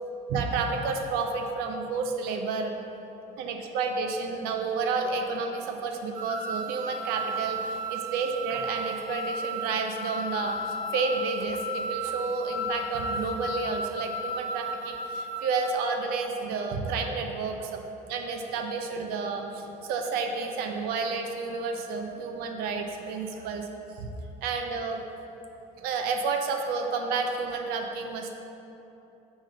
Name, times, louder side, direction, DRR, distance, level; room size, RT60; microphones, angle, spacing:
voice 1, 0.3-2.7 3.4-17.8 18.1-23.7 24.0-24.1 24.4-25.0 25.8-28.4, right 4 dB, 85° right, 4 dB, 0.6 m, -30 dB
sound 1, 6.1-15.7, right 1 dB, 60° right, 1.3 m, -34 dB
4.9 x 4.1 x 5.1 m, 3.0 s
cardioid pair, 140°, 15 cm